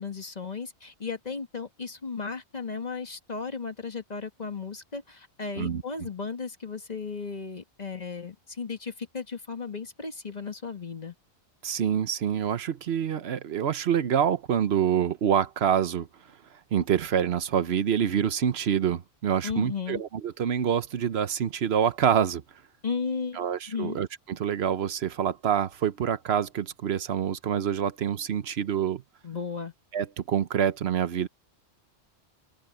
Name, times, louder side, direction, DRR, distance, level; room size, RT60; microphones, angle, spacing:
voice 1, 0.0-11.1 19.4-20.0 22.8-24.0 29.2-29.7, left 5 dB, 40° left, 1.6 m, -35 dB
voice 2, 11.6-16.1 16.7-22.4 23.4-29.0 29.9-31.3, right 8 dB, 70° right, 1.0 m, -26 dB
omnidirectional pair, 1.1 m